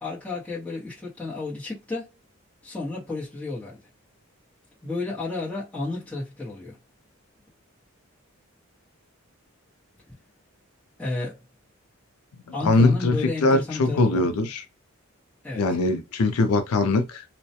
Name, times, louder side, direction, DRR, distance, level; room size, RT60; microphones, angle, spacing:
voice 1, 0.0-2.1 2.6-3.8 4.8-6.8 11.0-11.4 12.5-14.2 15.4-15.6, left 3 dB, 5° left, 0.9 m, -32 dB
voice 2, 12.6-14.6 15.6-17.2, left 3 dB, 80° left, 0.4 m, -21 dB
2.3 x 2.1 x 2.7 m
head